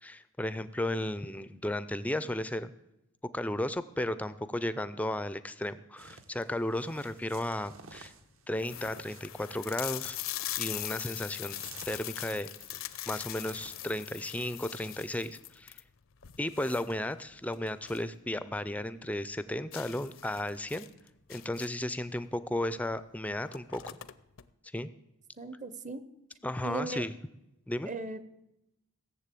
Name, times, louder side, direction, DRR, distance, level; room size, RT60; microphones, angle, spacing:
voice 1, 0.0-2.7 3.3-8.1 8.5-10.2 10.6-11.6 11.9-12.5 13.1-15.8 16.4-20.9 21.3-23.8 24.7-24.9 26.4-27.1 27.7-27.9, left 1 dB, 5° left, 14 dB, 0.4 m, -34 dB
sound 1, 6.0-14.1, right 5 dB, 65° right, 1.0 m, -54 dB
sound 2, 6.7-7.2 7.9-8.0 8.2-8.3 8.6-18.1 18.5-18.6 19.0-19.1 19.7-21.9 22.9-23.0 23.3-24.4, left 15 dB, 60° left, 0.5 m, -41 dB
voice 2, 25.4-26.0 26.6-27.0 27.9-28.2, right 2 dB, 30° right, 13 dB, 0.7 m, -37 dB
17.0 x 7.3 x 8.3 m, 0.89 s
head